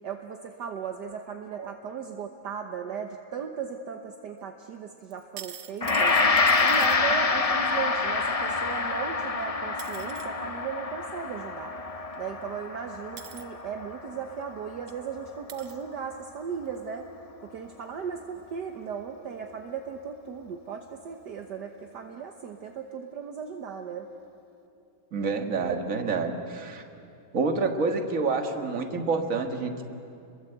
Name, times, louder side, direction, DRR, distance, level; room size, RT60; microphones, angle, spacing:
voice 1, 0.0-6.2 6.6-11.7 12.2-17.1 17.4-24.1, right 7 dB, 65° right, 4 dB, 1.6 m, -37 dB
sound 1, 5.1-7.0 9.2-9.3 9.8-10.3 12.1-12.2 13.2-13.5 14.4-14.5 14.9-15.0 15.5-15.8 16.7-16.8, right 10 dB, 85° right, 1.9 m, -44 dB
Gong, 5.8-15.0, left 4 dB, 35° left, 0.5 m, -27 dB
voice 2, 25.1-26.8 27.3-29.8, right 4 dB, 45° right, 5 dB, 2.0 m, -28 dB
30.0 x 22.5 x 8.1 m, 2.6 s
omnidirectional pair, 2.1 m